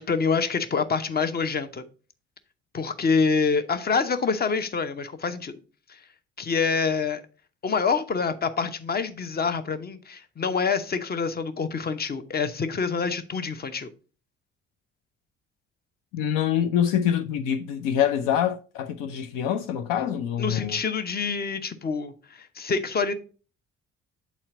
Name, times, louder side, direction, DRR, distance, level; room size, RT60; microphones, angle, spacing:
voice 1, 0.0-1.8 2.7-5.5 5.9-6.0 6.4-7.2 7.6-13.9 20.4-23.1, left 5 dB, 25° left, 0.8 m, -26 dB
voice 2, 16.1-20.8, left 9 dB, 65° left, 0.6 m, -25 dB
8.2 x 4.3 x 3.8 m
figure-of-eight pair, 45°, 35 cm